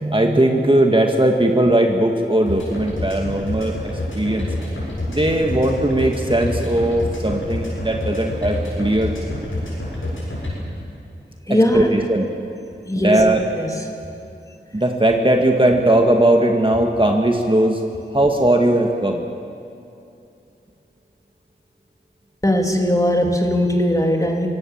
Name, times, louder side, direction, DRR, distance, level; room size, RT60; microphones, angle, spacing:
voice 1, 0.0-4.5 5.1-9.1 11.7-12.3 12.9-13.4 14.7-17.8 18.1-19.2, right 1 dB, 25° right, 2 dB, 1.8 m, -18 dB
sound 1, 2.5-10.5, left 2 dB, 85° left, 7.5 m, -27 dB
voice 2, 11.5-11.9 12.9-13.2 13.6-13.8 22.4-24.5, left 1 dB, 15° left, 2 dB, 3.0 m, -19 dB
24.5 x 17.0 x 7.4 m, 2.6 s
wide cardioid pair, 40°, 20 cm